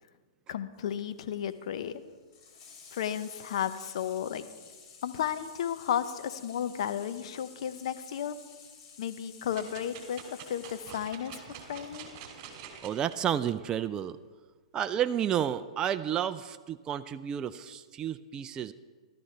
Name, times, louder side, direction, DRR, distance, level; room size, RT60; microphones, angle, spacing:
voice 1, 0.5-2.0 2.9-4.5 5.0-8.4 9.0-12.1, left 9 dB, 65° left, 11 dB, 0.8 m, -33 dB
Water tap faucet / Sink (filling or washing), 0.8-12.6 13.9-14.0, left 5 dB, 45° left, 2.9 m, -53 dB
sound 1, 9.5-13.2 13.7-13.8, right 7 dB, 45° right, 2.7 m, -46 dB
voice 2, 12.8-14.2 14.7-18.7, right 9 dB, 25° right, 11 dB, 0.4 m, -31 dB
15.0 x 12.5 x 3.3 m, 1.4 s
hypercardioid pair, 115°, 3 cm